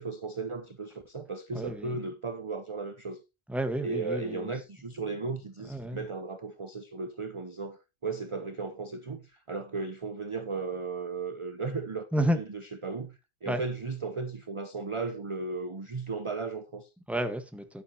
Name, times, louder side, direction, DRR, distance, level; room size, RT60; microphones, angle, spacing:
voice 1, 0.0-3.2 3.8-16.9, right 4 dB, 30° right, 0.7 m, -36 dB
voice 2, 1.5-2.0 3.5-4.5 5.7-6.0 12.1-12.4 13.5-13.6 17.1-17.8, right 1 dB, ahead, 1.2 m, -30 dB
10.5 x 9.6 x 2.8 m
omnidirectional pair, 1.1 m